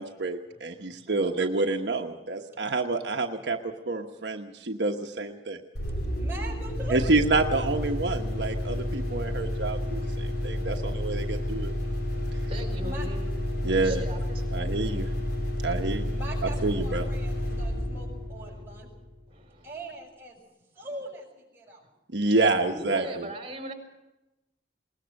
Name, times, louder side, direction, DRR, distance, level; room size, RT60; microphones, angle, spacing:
voice 1, 0.0-5.6 6.9-11.7 13.6-14.0 14.5-15.1 15.6-16.1 16.6-17.0 22.1-23.3, right 3 dB, 70° right, 3 dB, 1.2 m, -28 dB
voice 2, 1.0-1.7 6.2-7.1 12.8-13.1 16.1-18.9 19.6-20.4 20.7-21.9 22.5-22.6 22.9-23.1, right 2 dB, 10° right, -2 dB, 6.1 m, -42 dB
sound 1, 5.7-19.2, left 1 dB, 60° left, 4.1 m, -30 dB
voice 3, 12.1-13.4 13.7-15.2 18.5-18.6 19.3-19.7 22.2-22.3 22.7-23.7, equal, 35° right, 5 dB, 4.4 m, -41 dB
21.0 x 20.0 x 6.5 m, 0.98 s
head